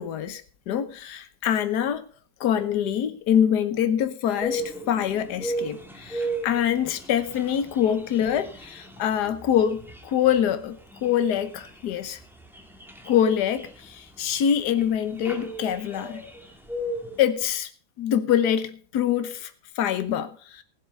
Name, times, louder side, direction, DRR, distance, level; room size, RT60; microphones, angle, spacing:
voice 1, 0.0-2.0 2.4-12.2 13.1-16.2 17.2-17.7 18.0-19.5 19.8-20.6, left 9 dB, 75° left, 1.5 m, -25 dB
sound 1, 4.4-17.3, right 1 dB, ahead, 1.9 m, -36 dB
15.5 x 8.3 x 5.3 m
omnidirectional pair, 1.8 m